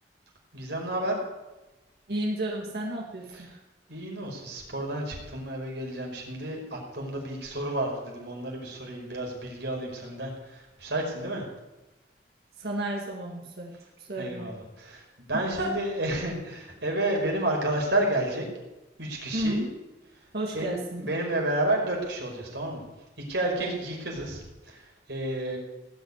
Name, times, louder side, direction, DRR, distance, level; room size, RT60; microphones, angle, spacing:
voice 1, 0.5-1.2 3.3-3.6 3.9-11.4 14.2-18.5 19.0-19.6 20.5-22.8 23.3-25.6, right 1 dB, 85° right, 0 dB, 5.1 m, -31 dB
voice 2, 2.1-3.5 12.6-13.7 14.1-14.5 15.3-15.8 19.3-19.7 20.3-21.1 23.6-23.7, right 1 dB, 65° right, -2 dB, 2.1 m, -32 dB
18.0 x 6.5 x 9.7 m, 1.1 s
head